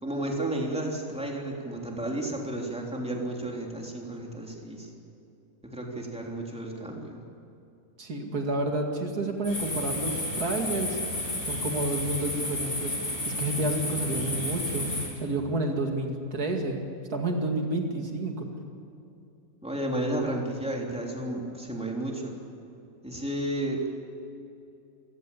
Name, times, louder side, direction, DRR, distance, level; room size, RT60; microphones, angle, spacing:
voice 1, 0.0-4.9 5.7-7.2 19.6-22.4 23.0-23.9, right 1 dB, 5° right, -1 dB, 3.3 m, -32 dB
voice 2, 8.0-11.0 11.5-14.9 15.2-16.8 17.1-18.5, right 2 dB, 90° right, 3 dB, 2.9 m, -30 dB
sound 1, 9.4-15.1, left 1 dB, 75° left, 8.6 m, -32 dB
28.0 x 16.5 x 8.5 m, 2.7 s
omnidirectional pair, 1.6 m